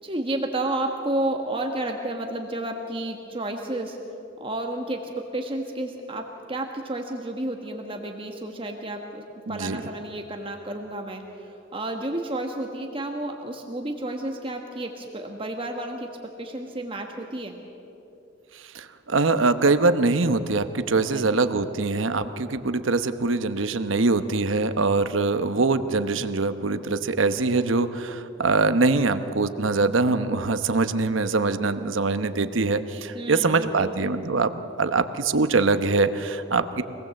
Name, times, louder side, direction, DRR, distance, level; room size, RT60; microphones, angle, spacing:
voice 1, 0.0-4.0 4.4-9.2 9.5-17.6 21.1-21.4 33.1-33.9, right 1 dB, 25° right, 3 dB, 1.3 m, -31 dB
voice 2, 9.5-9.8 18.5-36.8, right 3 dB, 80° right, 10 dB, 1.0 m, -23 dB
25.0 x 19.0 x 7.7 m, 2.9 s
head